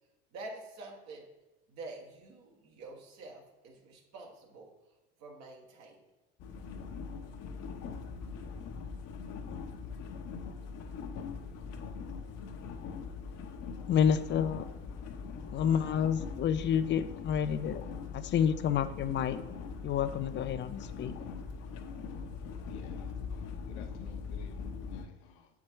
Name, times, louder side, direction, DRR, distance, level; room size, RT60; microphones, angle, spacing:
voice 1, 0.3-1.3 1.7-4.7 5.2-6.0 15.5-16.0, right 2 dB, 60° right, 1 dB, 1.7 m, -47 dB
sound 1, 6.4-25.1, left 5 dB, 55° left, 0.9 m, -41 dB
voice 2, 13.9-14.6 15.5-17.8 18.1-19.4 19.8-21.1, left 8 dB, 35° left, 12 dB, 0.5 m, -29 dB
voice 3, 22.7-25.5, left 9 dB, 85° left, 6 dB, 0.9 m, -54 dB
7.3 x 4.7 x 4.6 m, 1.1 s
supercardioid pair, 100°, 31 cm